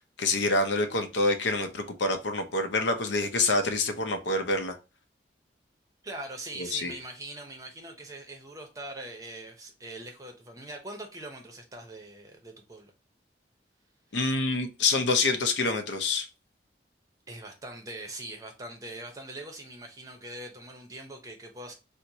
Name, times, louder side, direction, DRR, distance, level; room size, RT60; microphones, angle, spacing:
voice 1, 0.2-4.8 6.6-6.9 14.1-16.3, left 3 dB, 80° left, 0.6 m, -27 dB
voice 2, 6.0-12.9 17.3-21.7, right 1 dB, 20° right, 0.6 m, -42 dB
4.4 x 2.1 x 2.7 m
head